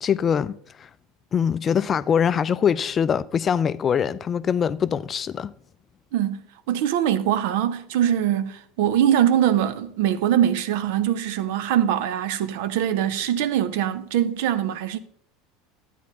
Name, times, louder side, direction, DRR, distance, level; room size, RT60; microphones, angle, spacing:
voice 1, 0.0-0.9 1.3-5.5, left 7 dB, 30° left, 0.3 m, -23 dB
voice 2, 6.1-15.0, right 10 dB, 60° right, 0.6 m, -22 dB
13.5 x 9.1 x 2.8 m
figure-of-eight pair, 75°, 0 cm